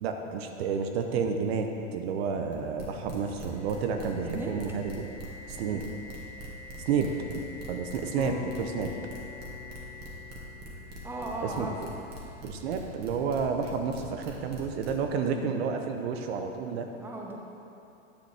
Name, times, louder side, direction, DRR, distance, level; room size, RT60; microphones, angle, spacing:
voice 1, 0.0-5.1 5.5-5.8 6.8-8.9 11.4-11.7 12.4-16.9, right 5 dB, 55° right, 5 dB, 0.8 m, -30 dB
sound 1, 2.5-15.1, right 1 dB, 25° right, 1.8 m, -44 dB
Dog Whistle, 3.0-12.8, left 3 dB, 80° left, 2.0 m, -49 dB
sound 2, 8.2-12.4, left 9 dB, 15° left, 0.4 m, -44 dB
voice 2, 11.0-11.7 15.3-15.6 17.0-17.4, right 1 dB, 5° right, -1 dB, 0.8 m, -37 dB
10.0 x 7.4 x 3.4 m, 2.9 s
hypercardioid pair, 100°, 38 cm